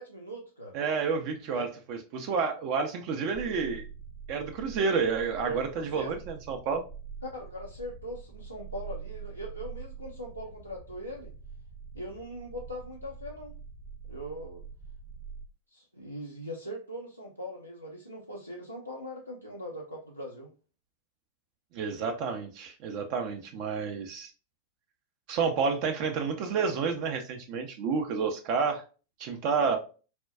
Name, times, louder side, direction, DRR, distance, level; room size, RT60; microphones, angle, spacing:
voice 1, 0.0-0.8 1.5-1.6 5.4-6.2 7.3-11.3 11.9-13.5 14.1-14.6 15.7-20.5, equal, 90° left, -2 dB, 0.5 m, -41 dB
voice 2, 0.7-3.8 4.3-6.8 21.7-24.3 25.3-28.8 29.2-29.8, right 5 dB, 45° right, 5 dB, 0.4 m, -30 dB
sound 1, 3.3-15.5, right 6 dB, 10° left, 0.6 m, -45 dB
4.2 x 2.2 x 2.2 m, 0.35 s
figure-of-eight pair, 90°, 0 cm